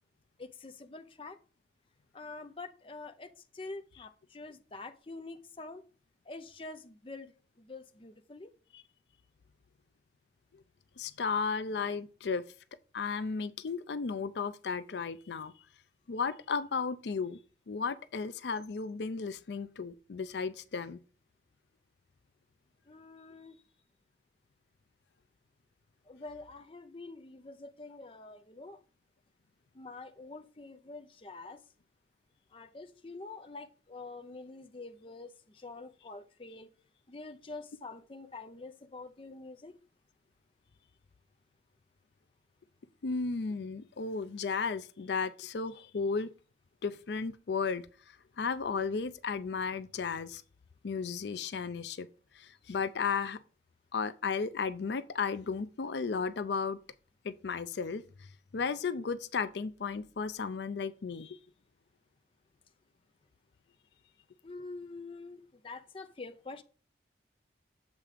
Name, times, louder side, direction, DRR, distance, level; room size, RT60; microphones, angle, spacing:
voice 1, 0.4-1.4 2.1-5.9 6.3-8.5 22.9-23.6 26.1-28.8 29.7-31.6 32.5-36.7 37.1-39.7 64.4-66.6, left 3 dB, 30° left, 0.6 m, -46 dB
voice 2, 11.0-12.4 12.9-15.5 16.1-17.4 17.7-21.0 43.0-46.3 46.8-47.8 48.4-50.4 50.8-52.1 52.3-53.4 53.9-56.8 57.2-58.0 58.5-61.4, left 5 dB, 75° left, 0.5 m, -34 dB
7.4 x 3.7 x 5.0 m
head